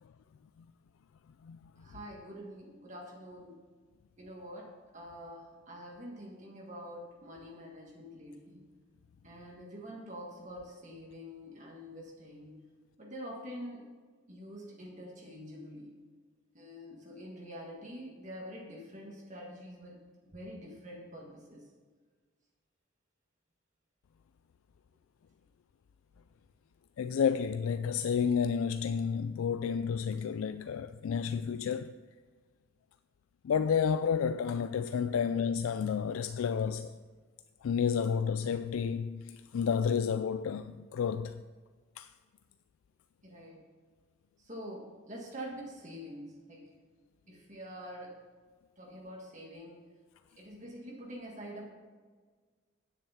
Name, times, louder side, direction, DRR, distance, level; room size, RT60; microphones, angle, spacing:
voice 1, 1.8-3.6 4.2-8.7 9.2-12.6 13.0-13.9 14.3-16.0 16.5-21.7 43.2-43.7 44.4-46.7 47.3-48.2 48.8-49.8 50.4-51.7, equal, 35° right, 1.6 m, -46 dB
voice 2, 27.0-32.0 33.4-36.9 37.6-41.4 42.0-42.1, left 7 dB, 90° left, 0.3 m, -31 dB
9.9 x 7.6 x 5.6 m
head